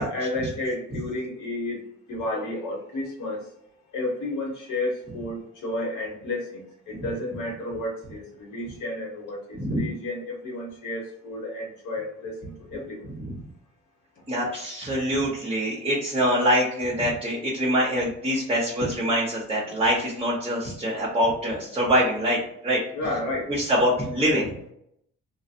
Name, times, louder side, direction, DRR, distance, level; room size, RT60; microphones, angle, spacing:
voice 1, 0.0-1.8 2.1-3.5 3.9-13.0 19.7-19.8 22.9-23.5, left 2 dB, 75° left, -2 dB, 1.3 m, -32 dB
voice 2, 14.3-22.8 23.5-24.5, equal, 20° right, -5 dB, 1.0 m, -24 dB
2.5 x 2.4 x 2.7 m, 0.73 s
cardioid pair, 90°, 30 cm